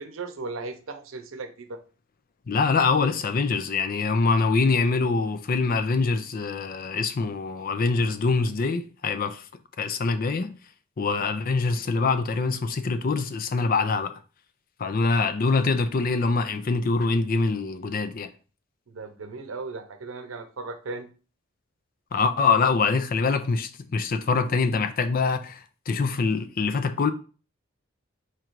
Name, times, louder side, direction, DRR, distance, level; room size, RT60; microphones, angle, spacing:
voice 1, 0.0-1.8 18.9-21.1, right 3 dB, 85° right, 0.7 m, -36 dB
voice 2, 2.5-9.4 9.8-10.5 11.0-14.1 14.8-18.3 22.1-27.1, left 4 dB, 45° left, 0.5 m, -24 dB
4.4 x 2.6 x 4.5 m
head